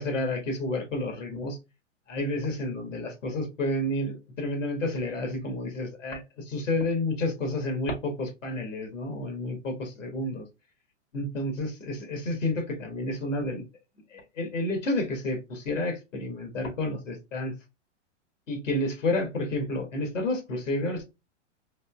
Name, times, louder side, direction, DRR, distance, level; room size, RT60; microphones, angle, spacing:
voice 1, 0.0-1.6 2.1-10.4 11.1-13.6 14.1-17.5 18.5-21.0, left 1 dB, 85° left, 3 dB, 1.7 m, -30 dB
4.1 x 3.1 x 2.4 m, 0.25 s
hypercardioid pair, 120°, 37 cm